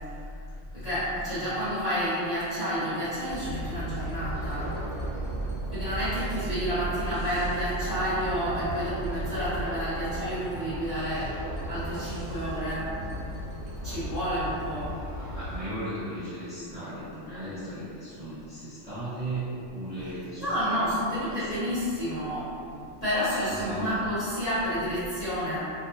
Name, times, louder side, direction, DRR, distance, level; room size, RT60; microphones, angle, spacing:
voice 1, 0.7-4.7 5.7-11.3 11.7-12.9 13.8-14.9 20.4-25.6, equal, 35° left, -16 dB, 0.8 m, -30 dB
sound 1, 3.3-15.6, right 1 dB, 65° right, 0.8 m, -35 dB
voice 2, 15.3-20.8 21.3-21.5 23.4-23.9, right 1 dB, 10° right, -15 dB, 1.0 m, -36 dB
2.6 x 2.1 x 2.5 m, 2.6 s
omnidirectional pair, 1.4 m